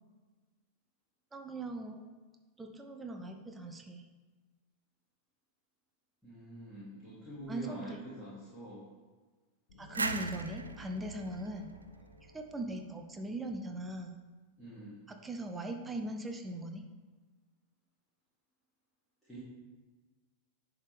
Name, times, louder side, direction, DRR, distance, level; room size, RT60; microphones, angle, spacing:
voice 1, 1.3-2.0 2.6-4.0 7.5-8.0 9.8-11.7 12.3-14.1 15.1-16.8, right 1 dB, 10° right, 4 dB, 0.6 m, -40 dB
voice 2, 6.2-8.8 14.6-15.0 19.3-19.4, right 1 dB, 5° left, -11 dB, 2.2 m, -46 dB
sound 1, 9.7-13.5, left 1 dB, 55° left, 1.2 m, -55 dB
sound 2, 9.9-12.7, right 3 dB, 75° right, 0.3 m, -39 dB
10.5 x 3.6 x 3.4 m, 1.3 s
figure-of-eight pair, 90°, 0 cm